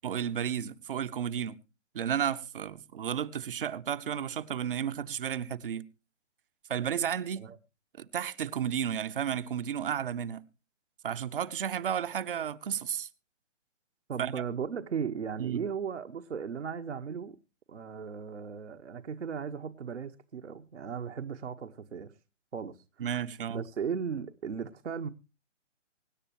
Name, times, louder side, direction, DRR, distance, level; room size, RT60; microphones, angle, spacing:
voice 1, 0.0-1.6 1.9-5.8 6.7-7.4 8.0-10.4 11.0-13.1 14.2-14.3 15.4-15.6 23.0-23.6, right 9 dB, 45° right, 0.9 m, -32 dB
voice 2, 14.1-17.4 17.7-22.2 22.5-23.1 23.5-25.1, right 6 dB, 65° right, 1.2 m, -36 dB
25.0 x 9.9 x 2.9 m
figure-of-eight pair, 135°, 37 cm